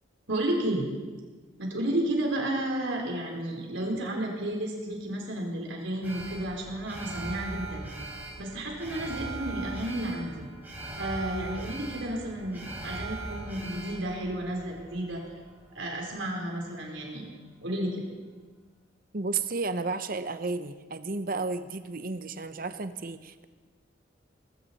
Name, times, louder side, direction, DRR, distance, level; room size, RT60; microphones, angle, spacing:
voice 1, 0.3-0.9 1.6-7.9 8.4-10.4 10.9-15.2 15.7-17.3 17.6-18.0, right 1 dB, 75° right, 0 dB, 3.9 m, -32 dB
Alarm, 6.0-16.3 16.6-16.7, right 2 dB, 10° right, 6.6 m, -40 dB
voice 2, 19.1-23.4, right 3 dB, 45° right, 11 dB, 0.8 m, -32 dB
19.5 x 16.5 x 4.3 m, 1.4 s
head